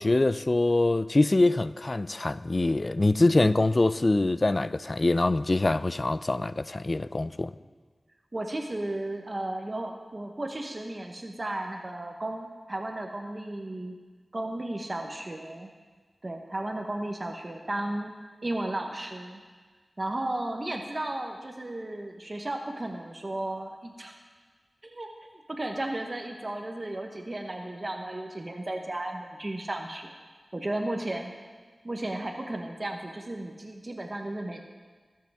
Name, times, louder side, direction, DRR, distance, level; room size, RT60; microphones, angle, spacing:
voice 1, 0.0-7.5, left 2 dB, 35° left, 0.3 m, -24 dB
voice 2, 8.3-14.0 14.3-15.7 16.2-18.1 18.4-19.4 20.0-24.1 24.8-25.1 25.5-30.1 30.5-31.3 31.8-34.6, right 1 dB, 35° right, 0.9 m, -34 dB
22.5 x 7.6 x 3.5 m
wide cardioid pair, 85°, 0 cm